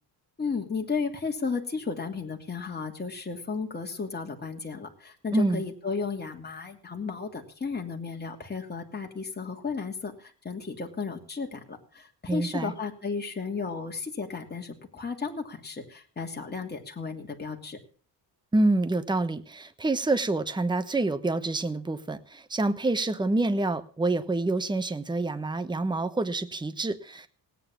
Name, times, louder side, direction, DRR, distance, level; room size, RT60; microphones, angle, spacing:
voice 1, 0.4-17.8, left 4 dB, 25° left, 1 dB, 2.8 m, -34 dB
voice 2, 5.3-5.6 12.3-12.7 18.5-27.3, right 2 dB, 10° right, 11 dB, 1.0 m, -27 dB
17.5 x 9.4 x 7.2 m, 0.42 s
cardioid pair, 135°, 41 cm